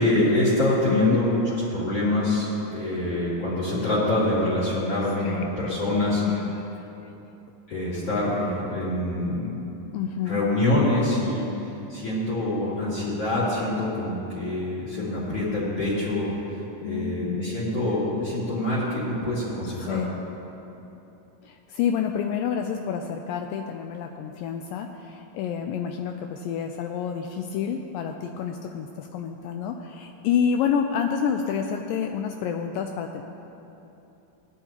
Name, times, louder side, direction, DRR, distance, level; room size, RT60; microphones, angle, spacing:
voice 1, 0.0-1.4 1.7-6.2 7.7-9.6 10.2-11.4 11.9-16.3 16.8-20.0, left 1 dB, 40° left, -10 dB, 3.3 m, -25 dB
voice 2, 0.9-1.2 5.2-5.7 6.3-7.1 9.9-10.4 16.8-17.4 19.6-20.2 21.4-33.2, left 7 dB, 80° left, 4 dB, 2.0 m, -29 dB
18.0 x 12.0 x 2.9 m, 3.0 s
omnidirectional pair, 4.3 m